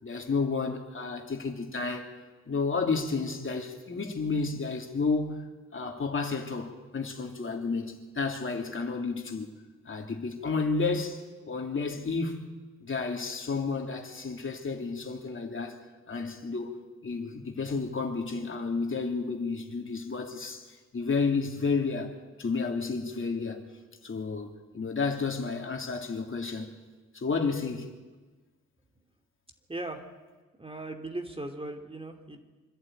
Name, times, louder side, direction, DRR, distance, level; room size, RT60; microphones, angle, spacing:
voice 1, 0.0-2.1 2.5-5.4 5.7-9.5 9.8-12.4 12.8-15.8 16.1-16.7 17.0-22.1 22.4-23.6 24.0-26.7 27.1-27.9, left 4 dB, 45° left, 3.1 m, -31 dB
voice 2, 29.7-30.1 30.6-32.4, right 2 dB, 20° right, 2.9 m, -38 dB
25.5 x 11.5 x 9.2 m
supercardioid pair, 55°, 29 cm